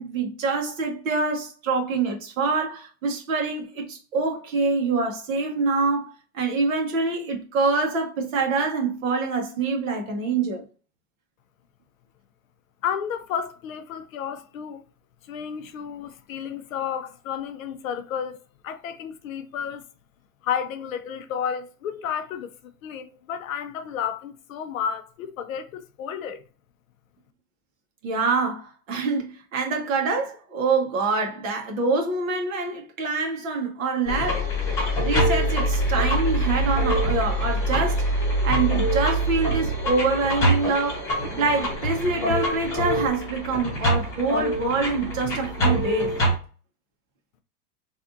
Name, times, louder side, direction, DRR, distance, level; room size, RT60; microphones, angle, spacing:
voice 1, 0.0-10.6 28.0-34.5 35.0-38.1 38.4-41.0 41.4-46.1, right 3 dB, 55° right, 1.1 m, -25 dB
voice 2, 12.8-14.8 15.3-18.4 18.6-19.8 20.4-22.5 22.8-26.4, left 8 dB, 60° left, 0.5 m, -31 dB
sound 1, 34.1-46.3, right 1 dB, 5° left, 0.7 m, -24 dB
3.4 x 2.4 x 2.6 m
supercardioid pair, 175°, 47 cm